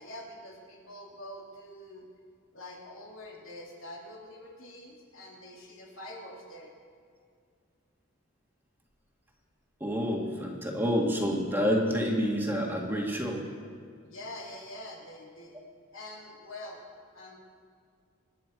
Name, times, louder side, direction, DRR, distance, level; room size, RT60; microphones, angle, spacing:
voice 1, 0.0-2.1 2.5-6.7 14.0-15.6 15.9-16.8 17.1-17.4, left 1 dB, 75° left, -2 dB, 3.1 m, -45 dB
voice 2, 9.8-13.5, equal, 10° right, -1 dB, 1.8 m, -28 dB
25.5 x 10.0 x 4.8 m, 2.2 s
head